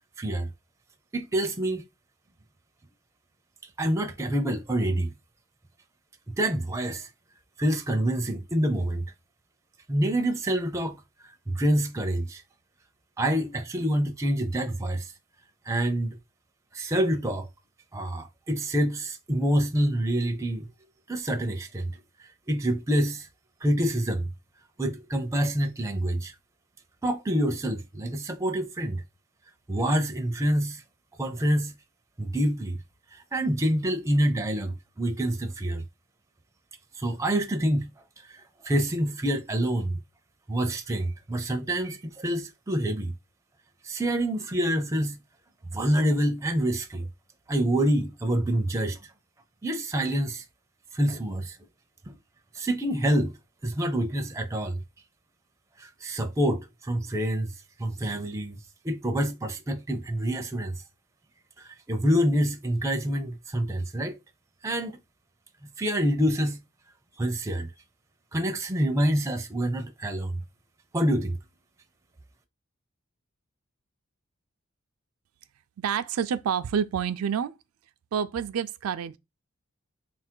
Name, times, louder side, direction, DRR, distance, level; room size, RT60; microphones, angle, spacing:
voice 1, 0.2-0.5 1.1-1.9 3.8-5.1 6.4-7.1 7.6-9.0 9.9-12.4 13.2-15.1 15.7-16.2 16.7-17.5 17.9-20.7 21.1-22.0 22.5-23.3 23.6-24.3 24.8-26.3 27.0-29.0 29.7-30.8 31.2-31.7 32.2-32.8 33.1-35.8 37.0-37.9 38.2-40.0 40.5-43.1 43.8-45.2 45.7-47.1 47.5-49.0 49.6-50.4 50.9-51.6 52.1-52.2 52.5-53.4 53.6-54.8 55.8-57.5 57.8-58.6 58.8-60.8 61.6-64.2 64.6-65.0 65.8-66.6 67.2-67.7 68.3-70.4 70.9-71.4, right 1 dB, 15° right, 0.4 m, -27 dB
voice 2, 75.8-77.6 78.1-79.2, right 7 dB, 80° right, 0.4 m, -28 dB
3.8 x 2.5 x 4.4 m
head